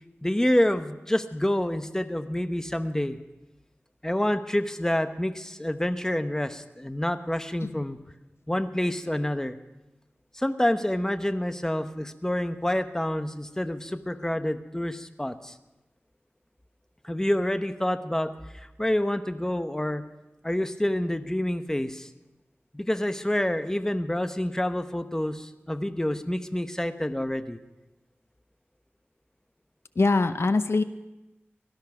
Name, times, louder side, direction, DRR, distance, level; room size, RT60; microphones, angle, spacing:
voice 1, 0.2-3.2 4.0-8.0 8.5-9.5 10.3-15.5 17.0-20.1 20.4-22.1 22.7-27.6, left 1 dB, 10° left, 9 dB, 0.9 m, -28 dB
voice 2, 30.0-30.8, left 3 dB, 75° left, 11 dB, 0.7 m, -23 dB
17.5 x 13.0 x 5.9 m, 1.0 s
wide cardioid pair, 60°, 4 cm